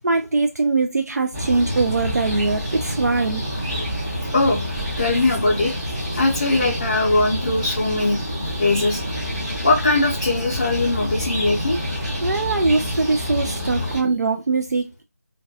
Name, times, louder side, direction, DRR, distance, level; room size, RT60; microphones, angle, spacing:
voice 1, 0.0-3.4 12.2-15.0, right 3 dB, 85° right, 0.4 m, -22 dB
sound 1, 1.3-14.0, equal, 15° right, 0.6 m, -27 dB
voice 2, 5.0-5.7 6.2-8.2 8.6-9.0 9.6-11.8, left 2 dB, 30° left, 0.5 m, -20 dB
2.3 x 2.2 x 2.5 m
figure-of-eight pair, 170°, 9 cm